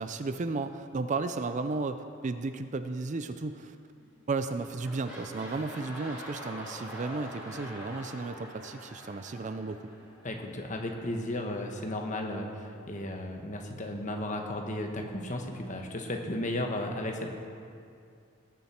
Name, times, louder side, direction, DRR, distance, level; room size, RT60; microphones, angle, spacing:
voice 1, 0.0-3.8 4.3-9.9, right 3 dB, 35° right, 9 dB, 0.4 m, -34 dB
sound 1, 4.0-4.2 4.5-10.3 11.0-11.1, equal, 5° right, 2.9 m, -45 dB
voice 2, 10.2-17.3, left 1 dB, 35° left, 2 dB, 1.2 m, -34 dB
19.0 x 7.3 x 4.4 m, 2.4 s
head